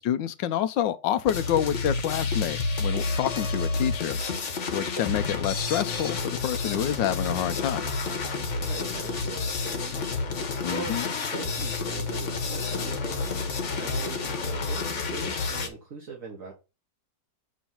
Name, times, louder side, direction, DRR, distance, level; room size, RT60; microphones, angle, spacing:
voice 1, 0.0-4.2 4.7-7.9 10.6-11.1, left 10 dB, 85° left, 1.3 m, -28 dB
sound 1, 1.3-15.7, left 4 dB, 45° left, 1.2 m, -30 dB
voice 2, 8.6-9.9 10.7-11.0 11.3-16.5, right 5 dB, 45° right, 1.8 m, -40 dB
7.0 x 3.1 x 5.7 m
omnidirectional pair, 2.0 m